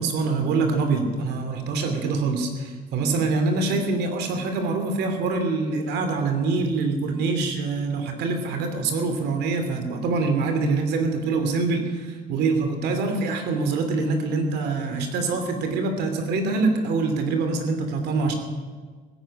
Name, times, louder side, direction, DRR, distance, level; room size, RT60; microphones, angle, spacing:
voice 1, 0.0-18.3, right 3 dB, 80° right, 6 dB, 2.8 m, -25 dB
16.5 x 10.5 x 8.7 m, 1.5 s
cardioid pair, 110°, 17 cm